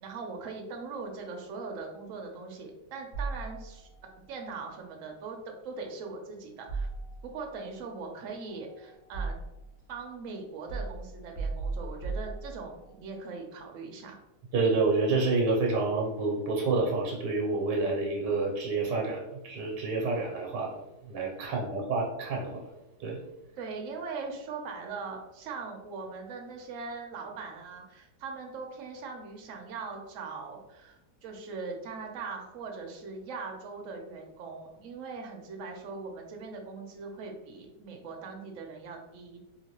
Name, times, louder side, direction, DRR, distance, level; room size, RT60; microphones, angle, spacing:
voice 1, 0.0-3.9 4.3-6.9 7.2-9.4 9.9-14.2 23.6-39.4, right 4 dB, 60° right, 2 dB, 0.9 m, -40 dB
sound 1, 3.1-4.0 6.7-7.6 8.5-9.8 10.7-12.9, right 3 dB, 20° left, 1.5 m, -36 dB
voice 2, 14.5-20.8 21.1-22.6 23.0-23.2, right 3 dB, 90° right, 0 dB, 1.3 m, -28 dB
3.8 x 2.9 x 2.9 m, 0.96 s
omnidirectional pair, 1.8 m